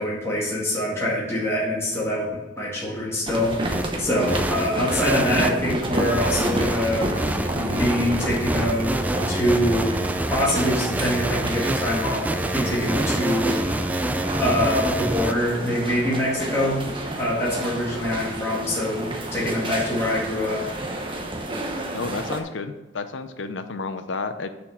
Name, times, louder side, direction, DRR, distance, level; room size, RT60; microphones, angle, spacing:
voice 1, 0.0-2.3 2.6-7.1 7.7-9.9 10.3-14.1 14.4-16.9 17.2-20.6, left 1 dB, 15° left, -7 dB, 2.1 m, -25 dB
sound 1, 3.3-22.4, right 1 dB, 25° right, 1.1 m, -30 dB
sound 2, 3.7-3.8 4.3-15.3, right 1 dB, 10° right, 0.3 m, -26 dB
voice 2, 21.9-24.5, left 4 dB, 85° left, 9 dB, 0.7 m, -31 dB
6.9 x 6.0 x 5.8 m, 1.1 s
head